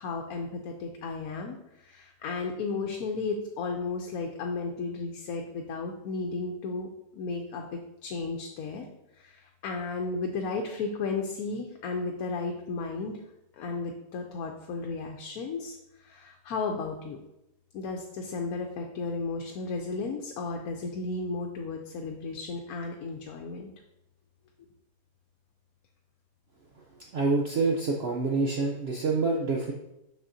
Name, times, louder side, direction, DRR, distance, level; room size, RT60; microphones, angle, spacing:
voice 1, 0.0-8.9 9.2-13.2 13.5-17.2 17.7-23.7, left 4 dB, 80° left, 2 dB, 1.1 m, -34 dB
voice 2, 27.1-29.7, right 3 dB, 55° right, 0 dB, 0.8 m, -26 dB
6.4 x 6.1 x 2.7 m, 0.87 s
omnidirectional pair, 1.5 m